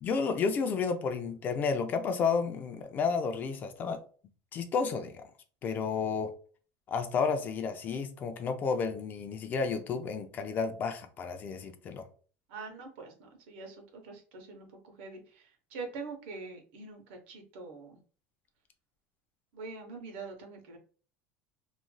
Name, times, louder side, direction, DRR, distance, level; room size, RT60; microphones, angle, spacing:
voice 1, 0.0-4.0 4.5-5.2 5.6-6.3 6.9-12.1, left 5 dB, 30° left, 7 dB, 0.4 m, -31 dB
voice 2, 12.5-13.8 14.0-15.4 15.7-18.0 19.5-20.8, right 4 dB, 80° right, 3 dB, 0.8 m, -44 dB
3.0 x 2.5 x 2.2 m, 0.40 s
cardioid pair, 155°, 6 cm